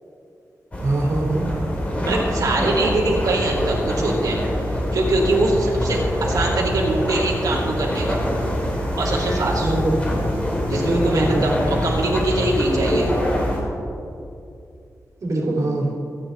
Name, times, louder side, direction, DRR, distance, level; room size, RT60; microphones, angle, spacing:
sound 1, 0.7-13.6, equal, 20° left, 2.7 m, -24 dB
voice 1, 0.8-1.5 9.6-9.9 10.8-11.4 15.2-15.9, right 2 dB, 55° right, -3 dB, 2.9 m, -22 dB
voice 2, 2.0-4.4 4.9-8.2 9.0-9.7 10.7-11.6 11.8-13.1, right 2 dB, 80° right, -5 dB, 2.7 m, -23 dB
25.5 x 9.3 x 4.0 m, 2.6 s
wide cardioid pair, 175°, 6 cm